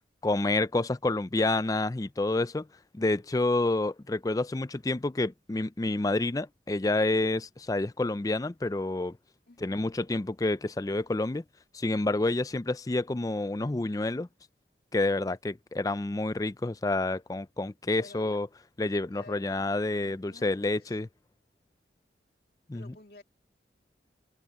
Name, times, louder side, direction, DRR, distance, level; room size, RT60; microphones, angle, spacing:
voice 1, 0.2-2.7 2.9-9.2 9.6-11.4 11.7-14.3 14.9-18.5 18.8-21.1 22.7-22.9, left 2 dB, 20° left, 0.4 m, -28 dB
voice 2, 9.5-9.8 17.9-18.4 19.1-21.0 22.7-23.2, left 2 dB, 55° left, 2.4 m, -52 dB
open air
head